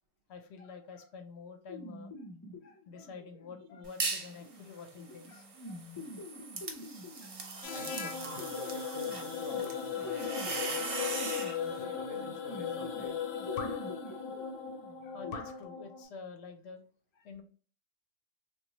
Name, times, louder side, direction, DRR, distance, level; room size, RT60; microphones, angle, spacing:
voice 1, 0.3-2.3 2.6-5.8 7.2-7.7 9.3-9.4 13.6-14.2 15.0-16.8 17.1-17.4, left 5 dB, 65° left, 0.8 m, -49 dB
sound 1, 1.7-15.4, left 2 dB, 35° left, 0.3 m, -47 dB
sound 2, 3.8-4.4 4.8-11.6, right 4 dB, 65° right, 0.3 m, -39 dB
sound 3, 7.6-16.0, left 7 dB, 90° left, 1.0 m, -37 dB
voice 2, 7.7-11.1 11.6-13.2, right 6 dB, 85° right, 1.0 m, -50 dB
3.6 x 2.2 x 2.9 m
omnidirectional pair, 1.3 m